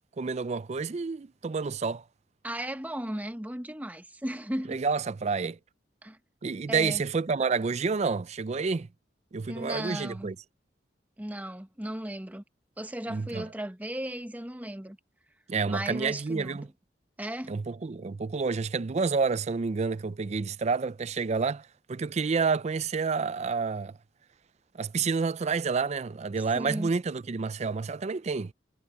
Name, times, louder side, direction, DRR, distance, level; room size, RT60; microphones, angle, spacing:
voice 1, 0.2-2.0 4.7-5.6 6.4-8.9 9.3-10.4 13.1-13.5 15.5-16.7 17.5-24.0 24.7-28.5, right 4 dB, 40° right, 0.4 m, -29 dB
voice 2, 2.4-4.8 6.0-6.2 6.7-7.0 9.5-10.3 11.2-12.4 12.8-15.0 15.7-16.6 17.2-17.5 26.5-26.9, right 1 dB, 10° right, 1.0 m, -36 dB
head